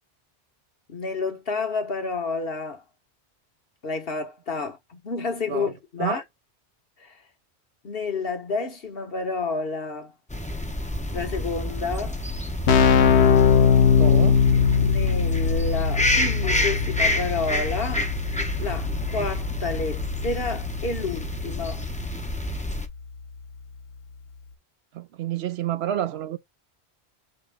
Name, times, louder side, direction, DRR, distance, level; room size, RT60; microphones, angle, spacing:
voice 1, 0.9-2.8 3.8-6.2 7.0-7.1 7.8-10.1 11.1-12.2 14.5-18.1 18.6-21.8, left 4 dB, 60° left, 1.4 m, -30 dB
sound 1, 10.3-22.9, left 1 dB, 10° left, 0.5 m, -29 dB
Keyboard (musical), 12.1-12.2 12.4-23.0, left 6 dB, 85° left, 1.0 m, -22 dB
voice 2, 14.0-14.4 24.9-26.4, right 11 dB, 75° right, 0.8 m, -29 dB
5.3 x 3.0 x 3.3 m
omnidirectional pair, 1.1 m